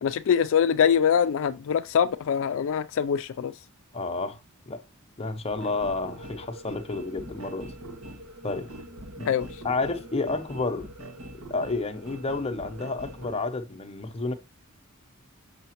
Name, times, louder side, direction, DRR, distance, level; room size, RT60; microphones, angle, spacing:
voice 1, 0.0-3.5 9.3-9.5, left 8 dB, 65° left, 0.4 m, -23 dB
voice 2, 3.9-4.4 4.7-4.8 5.2-7.7 8.4-8.7 9.2-9.3 9.6-10.9 11.5-14.3, left 3 dB, 30° left, 0.7 m, -30 dB
sound 1, 5.5-13.4, right 1 dB, 85° right, 1.7 m, -43 dB
6.7 x 5.7 x 2.9 m
head